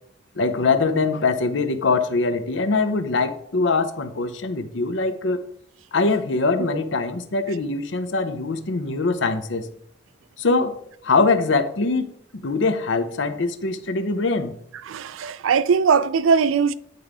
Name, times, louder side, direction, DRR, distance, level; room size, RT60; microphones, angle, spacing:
voice 1, 0.4-5.4 5.9-9.7 10.4-12.1 12.4-14.6, left 3 dB, 70° left, 0.7 m, -23 dB
voice 2, 14.9-16.7, right 6 dB, 85° right, 0.4 m, -20 dB
9.3 x 3.6 x 4.9 m
head